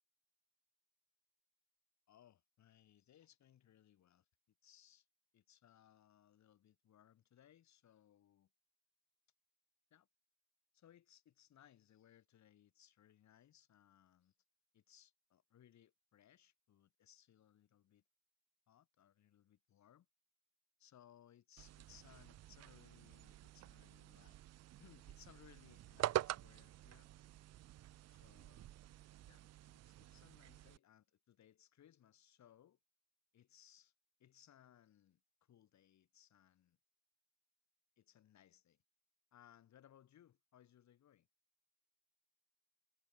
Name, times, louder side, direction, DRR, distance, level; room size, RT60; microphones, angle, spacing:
voice 1, 2.1-4.3 4.6-5.1 5.3-8.5 9.9-10.1 10.7-14.3 14.7-18.0 18.7-20.1 20.8-24.4 24.8-27.1 28.1-28.8 29.3-29.5 29.7-32.8 33.3-33.9 34.2-36.8 38.0-38.8 39.3-41.3, left 10 dB, 65° left, 3.9 m, -67 dB
sound 1, 21.6-30.8, right 14 dB, 60° right, 0.5 m, -46 dB
cardioid pair, 90°, 30 cm